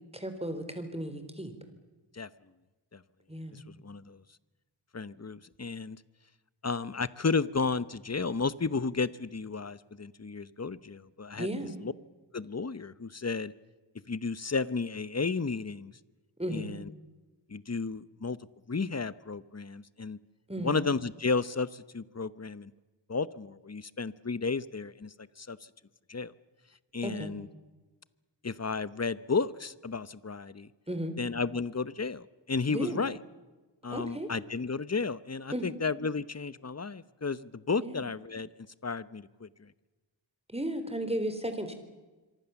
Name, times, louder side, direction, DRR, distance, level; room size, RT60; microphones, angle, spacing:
voice 1, 0.1-1.5 3.3-3.6 11.4-11.7 16.4-16.7 20.5-20.8 27.0-27.3 30.9-31.1 32.7-33.0 33.9-34.3 35.5-35.7 37.8-38.0 40.5-41.7, right 1 dB, 15° right, 8 dB, 4.0 m, -34 dB
voice 2, 3.5-4.2 4.9-6.0 6.6-11.5 11.8-11.9 12.3-13.5 14.1-15.9 16.5-16.9 17.5-18.4 18.7-20.2 20.6-22.7 23.1-25.6 26.1-26.3 26.9-27.5 28.4-30.7 31.2-33.2 33.8-38.5 38.8-39.7, left 4 dB, 35° left, 17 dB, 0.9 m, -33 dB
26.5 x 24.0 x 7.1 m, 1.2 s
wide cardioid pair, 60°, 47 cm